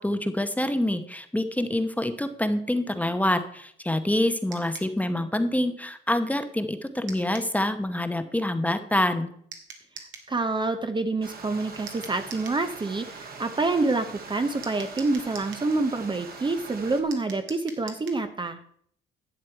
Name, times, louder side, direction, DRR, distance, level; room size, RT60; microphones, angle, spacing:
voice 1, 0.0-9.3, left 1 dB, 5° left, 9 dB, 0.9 m, -26 dB
sound 1, 4.5-4.9 7.1-7.5 9.5-10.3 11.9-12.6 14.6-15.7 17.1-18.2, right 5 dB, 75° right, 1.8 m, -44 dB
voice 2, 10.0-18.6, right 3 dB, 25° right, 8 dB, 0.8 m, -27 dB
Stream, 11.2-17.0, right 4 dB, 50° right, 1.8 m, -42 dB
11.0 x 7.6 x 4.5 m, 0.64 s
cardioid pair, 90°, 20 cm